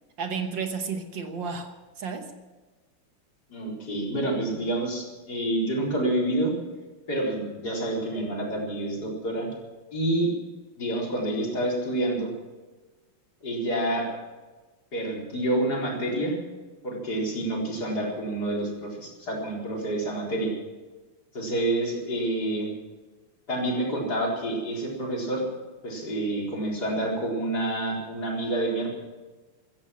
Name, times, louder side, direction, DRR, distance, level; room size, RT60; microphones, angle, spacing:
voice 1, 0.2-2.3, right 5 dB, 65° right, 6 dB, 1.9 m, -32 dB
voice 2, 3.5-6.5 7.1-9.5 9.9-10.3 10.8-12.3 13.4-14.1 14.9-16.4 16.8-20.5 21.3-22.7 23.5-25.4 25.8-28.9, right 1 dB, 45° left, -3 dB, 4.9 m, -28 dB
15.5 x 14.0 x 6.0 m, 1.2 s
omnidirectional pair, 2.3 m